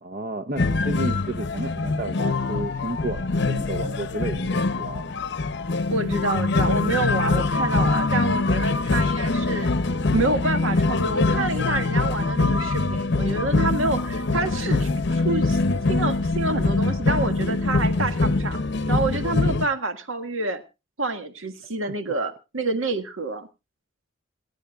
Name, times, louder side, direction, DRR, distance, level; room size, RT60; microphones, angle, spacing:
voice 1, 0.0-5.1, right 1 dB, 45° right, 10 dB, 0.7 m, -32 dB
sound 1, 0.6-19.7, left 3 dB, 55° left, 0.7 m, -23 dB
voice 2, 5.9-9.7 10.1-15.6 15.9-18.6 18.9-20.6 21.0-23.5, right 2 dB, 80° right, 7 dB, 1.7 m, -27 dB
28.0 x 9.7 x 2.4 m, 0.28 s
head